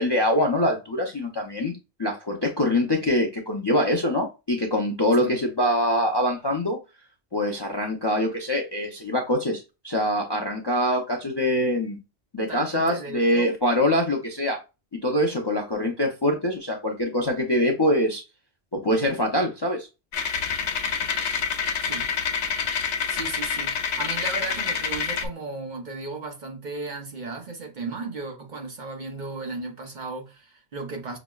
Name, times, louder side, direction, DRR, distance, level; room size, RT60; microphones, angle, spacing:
voice 1, 0.0-6.8 7.3-12.0 12.3-14.6 15.0-18.2 18.7-19.9, left 1 dB, 35° left, 0.4 m, -24 dB
voice 2, 12.5-13.5 21.8-22.1 22.8-31.2, right 3 dB, 50° right, 0.8 m, -35 dB
sound 1, 20.1-25.3, left 6 dB, 85° left, 0.9 m, -27 dB
5.9 x 2.0 x 2.3 m
omnidirectional pair, 1.2 m